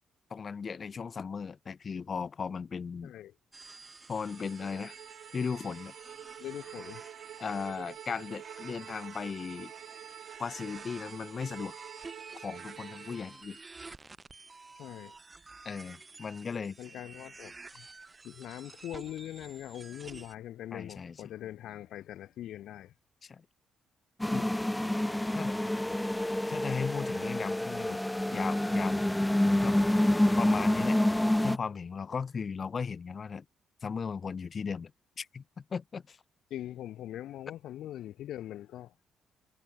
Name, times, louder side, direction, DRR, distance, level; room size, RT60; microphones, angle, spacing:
voice 1, 0.3-3.1 4.1-5.0 5.3-5.9 7.4-9.7 10.4-11.8 12.4-13.6 15.6-16.8 20.7-21.3 23.2-23.4 24.3-24.5 25.3-25.6 26.5-28.0 28.3-29.0 29.4-29.8 30.4-31.0 31.4-33.4 33.8-34.9 35.2-36.2, left 5 dB, 40° left, 0.9 m, -37 dB
sound 1, 3.5-20.3, right 3 dB, 25° right, 1.7 m, -51 dB
Bowed string instrument, 4.2-13.3, right 11 dB, 75° right, 1.9 m, -48 dB
voice 2, 6.4-7.0 14.8-15.2 16.8-17.9 18.2-22.9 36.5-38.9, left 12 dB, 80° left, 2.1 m, -42 dB
sound 2, 24.2-31.6, left 1 dB, 5° left, 0.4 m, -27 dB
cardioid pair, 90°, 0 cm